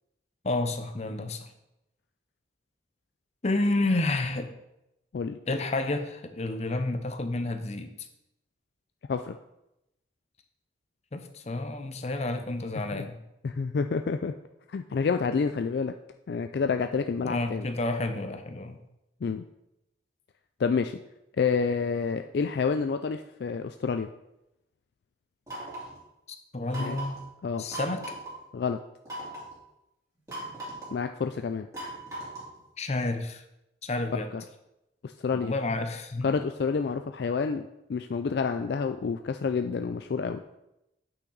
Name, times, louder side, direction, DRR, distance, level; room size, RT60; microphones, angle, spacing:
voice 1, 0.4-1.5 3.4-4.5 5.5-7.9 11.1-13.2 17.2-18.8 26.3-27.2 27.6-28.0 32.8-33.4 33.8-34.3 35.3-36.3, left 2 dB, 35° left, 8 dB, 0.7 m, -30 dB
voice 2, 13.4-14.3 14.7-15.9 16.3-17.7 19.2-19.4 20.6-21.0 21.4-24.1 26.8-27.0 27.4-27.7 28.5-28.8 30.9-31.7 34.3-34.4 35.0-35.5 36.2-40.4, left 5 dB, 60° left, 7 dB, 0.3 m, -28 dB
sound 1, 25.5-26.0 26.7-27.2 27.7-28.3 29.1-29.5 30.3-31.0 31.7-32.6, right 1 dB, 15° right, 2.4 m, -38 dB
8.7 x 5.9 x 4.0 m, 0.88 s
head